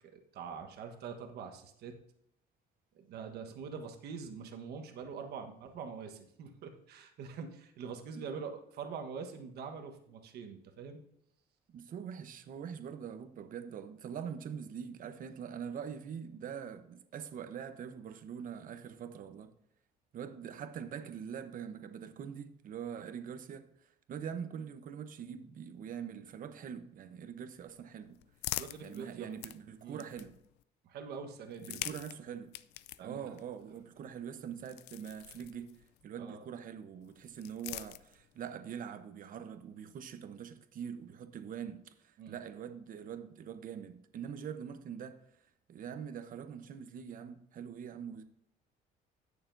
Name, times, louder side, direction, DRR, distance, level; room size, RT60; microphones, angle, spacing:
voice 1, 0.1-2.0 3.1-11.0 28.6-29.5 29.8-30.1 30.8-31.9 33.0-33.4 36.2-36.4 42.2-42.4, right 6 dB, 70° right, 1.3 m, -44 dB
voice 2, 11.7-19.5 20.1-23.7 24.1-28.2 28.8-30.4 31.6-32.5 33.0-35.8 36.0-45.2 45.7-48.2, right 8 dB, 55° right, 0.9 m, -43 dB
sound 1, 27.6-30.6 31.4-36.0 37.0-38.5, left 16 dB, 85° left, 0.4 m, -45 dB
16.0 x 6.8 x 2.7 m
cardioid pair, 110°, 17 cm